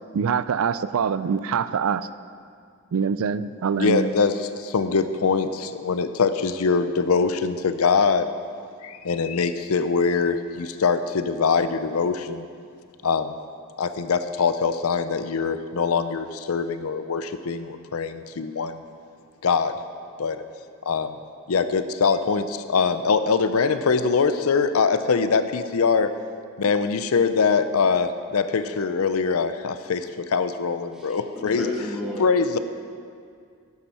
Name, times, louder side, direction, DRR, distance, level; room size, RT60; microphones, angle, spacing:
voice 1, 0.1-2.1 2.9-4.1, right 6 dB, 70° right, 15 dB, 0.4 m, -24 dB
voice 2, 3.7-8.3 8.8-12.5 13.0-13.3 13.8-18.8 19.4-19.8 20.2-20.4 20.9-21.1 21.5-26.1 26.6-31.7 32.2-32.6, left 5 dB, 75° left, 11 dB, 0.5 m, -23 dB
voice 3, 30.9-32.2, left 1 dB, ahead, -8 dB, 2.4 m, -32 dB
11.5 x 9.5 x 4.3 m, 2.2 s
head